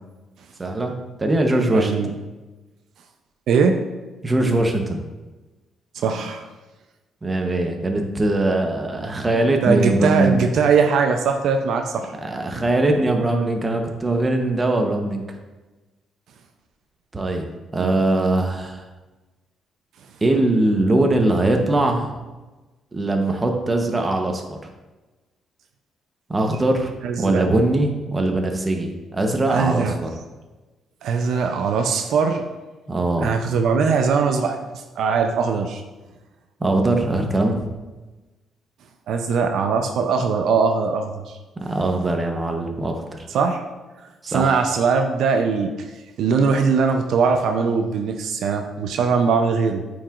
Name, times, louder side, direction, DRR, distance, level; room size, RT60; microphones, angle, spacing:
voice 1, 0.6-1.9 4.2-5.0 7.2-10.5 12.2-15.2 17.1-17.5 17.7-18.8 20.2-22.1 22.9-24.6 26.3-26.9 27.2-30.1 32.9-33.3 36.6-37.7 41.6-43.3 44.2-44.6, right 2 dB, 25° right, 3 dB, 0.9 m, -21 dB
voice 2, 1.7-2.1 3.5-3.8 5.9-6.5 9.6-12.1 17.8-18.0 27.0-27.4 29.5-30.0 31.0-32.4 33.2-35.8 39.1-41.4 43.3-43.6 44.3-45.9 46.2-49.8, right 5 dB, 75° right, 5 dB, 0.5 m, -21 dB
8.6 x 4.7 x 2.5 m, 1.2 s
cardioid pair, 90°, 0 cm